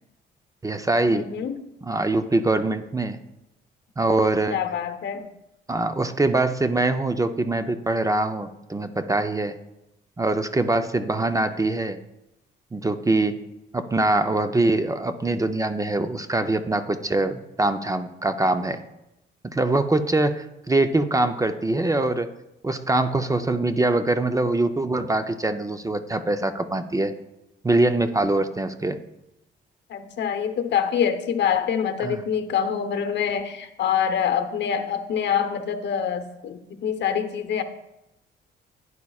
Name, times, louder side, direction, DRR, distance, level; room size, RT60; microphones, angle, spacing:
voice 1, 0.6-1.3 1.8-3.2 4.0-4.6 5.7-9.6 10.2-12.0 12.7-13.4 13.7-18.8 19.4-22.3 22.6-27.1 27.6-29.0 32.0-32.2, right 2 dB, 15° right, 9 dB, 0.5 m, -23 dB
voice 2, 1.1-1.6 4.5-5.3 29.9-37.6, left 8 dB, 60° left, 9 dB, 0.9 m, -25 dB
11.5 x 9.7 x 2.4 m, 0.89 s
cardioid pair, 90°, 20 cm